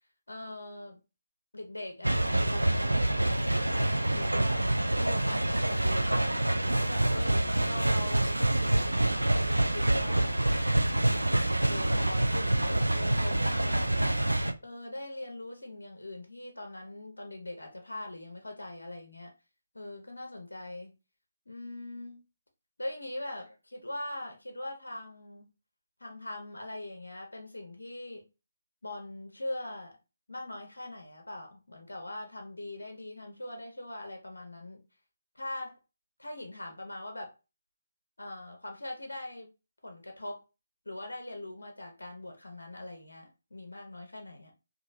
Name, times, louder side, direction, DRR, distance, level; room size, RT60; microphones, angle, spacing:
voice 1, 0.3-1.0 1.5-4.6 5.0-6.3 6.6-11.3 11.7-14.2 14.6-19.3 19.7-20.9 21.5-22.2 22.8-25.5 26.0-28.2 28.8-30.0 30.3-34.8 35.3-35.8 36.2-37.3 38.2-39.5 39.8-40.4 40.9-44.5, left 1 dB, 70° left, 0.7 m, -41 dB
sound 1, 2.0-14.5, right 1 dB, 80° right, 0.3 m, -26 dB
3.0 x 2.5 x 2.5 m
figure-of-eight pair, 145°, 0 cm